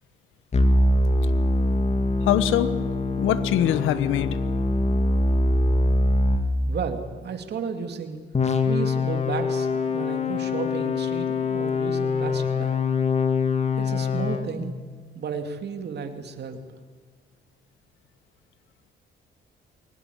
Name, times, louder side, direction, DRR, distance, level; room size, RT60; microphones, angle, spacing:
sound 1, 0.5-6.5 8.3-14.5, left 2 dB, 35° left, 2.3 m, -23 dB
voice 1, 2.3-2.7 3.2-4.4, left 11 dB, 85° left, 14 dB, 1.2 m, -23 dB
voice 2, 6.7-8.2 8.6-12.8 13.8-14.8 15.1-16.6, right 6 dB, 55° right, 6 dB, 2.7 m, -33 dB
22.5 x 18.5 x 9.9 m, 1.5 s
cardioid pair, 90°, 20 cm